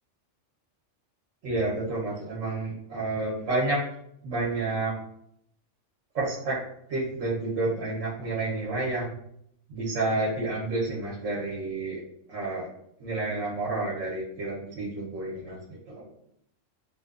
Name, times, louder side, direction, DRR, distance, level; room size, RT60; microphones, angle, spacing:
voice 1, 1.4-3.8 4.2-4.9 6.1-6.6 6.9-9.1 9.7-12.0 12.3-12.7 13.0-15.6 15.9-16.1, right 2 dB, 85° right, -5 dB, 1.0 m, -29 dB
2.8 x 2.1 x 2.3 m, 0.72 s
omnidirectional pair, 1.3 m